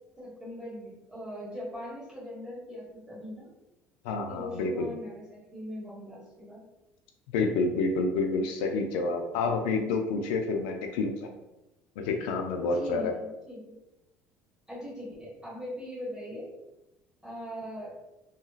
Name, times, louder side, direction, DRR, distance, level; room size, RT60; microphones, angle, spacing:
voice 1, 0.2-3.5 4.3-6.6 12.6-13.7 14.7-16.5 17.2-17.9, equal, 10° right, -7 dB, 1.5 m, -40 dB
voice 2, 4.0-4.9 7.3-11.1 12.0-13.1, left 3 dB, 90° left, 4 dB, 0.4 m, -28 dB
2.8 x 2.7 x 2.4 m, 0.94 s
supercardioid pair, 105°, 6 cm